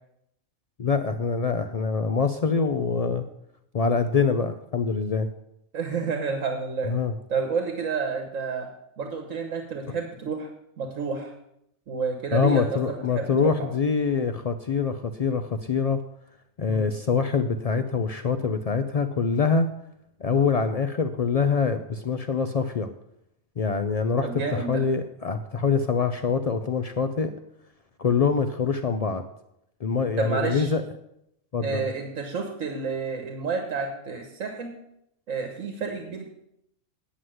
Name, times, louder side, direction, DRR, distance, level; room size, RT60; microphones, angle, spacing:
voice 1, 0.8-3.2 3.7-5.3 6.8-7.1 12.3-16.0 16.6-19.7 20.2-22.9 23.6-27.3 28.0-29.2 29.8-30.8 31.5-31.9, left 5 dB, 80° left, 9 dB, 0.3 m, -24 dB
voice 2, 5.7-6.9 7.3-8.7 9.0-10.5 10.8-11.3 11.9-13.7 16.6-16.9 24.2-24.8 30.2-30.7 31.6-34.7 35.3-36.3, right 5 dB, 70° right, 4 dB, 1.5 m, -30 dB
9.5 x 6.2 x 7.7 m, 0.78 s
omnidirectional pair, 1.4 m